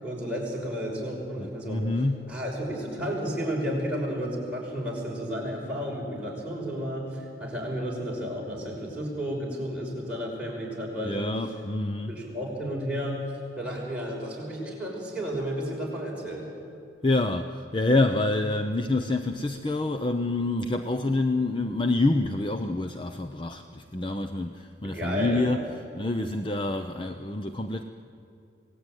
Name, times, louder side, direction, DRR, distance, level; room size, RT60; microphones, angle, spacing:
voice 1, 0.0-1.9 2.3-11.3 12.1-13.2 13.6-16.5 24.8-25.5, equal, 5° right, -4 dB, 5.8 m, -32 dB
voice 2, 1.4-2.3 11.0-12.1 17.0-25.6 26.0-27.8, left 2 dB, 25° left, 7 dB, 0.7 m, -27 dB
27.0 x 18.0 x 9.3 m, 2.5 s
head